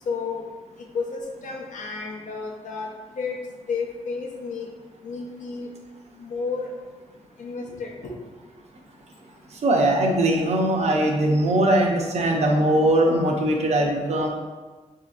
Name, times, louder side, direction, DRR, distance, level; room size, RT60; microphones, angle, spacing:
voice 1, 0.1-0.5 0.9-3.4 3.7-4.7 5.0-5.7 6.2-6.7 7.4-8.2, left 4 dB, 85° left, 0 dB, 0.6 m, -31 dB
voice 2, 9.6-14.3, right 1 dB, 60° right, 1 dB, 0.6 m, -20 dB
4.0 x 2.7 x 2.4 m, 1.3 s
wide cardioid pair, 130°, 13 cm